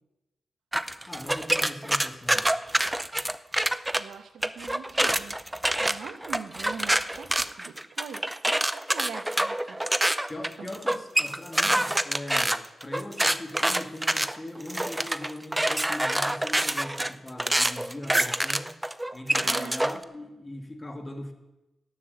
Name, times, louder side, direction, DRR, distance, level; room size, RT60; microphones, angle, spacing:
sound 1, 0.7-4.0 4.4-20.0, right 1 dB, 10° right, 0.6 m, -26 dB
voice 1, 1.1-2.6 10.3-18.7 19.1-21.3, left 1 dB, 25° left, 6 dB, 1.9 m, -40 dB
voice 2, 3.9-5.4 5.8-10.1 10.6-11.0 19.4-19.7, right 7 dB, 90° right, 10 dB, 1.0 m, -43 dB
12.0 x 7.7 x 8.0 m, 1.0 s
cardioid pair, 70°, 0 cm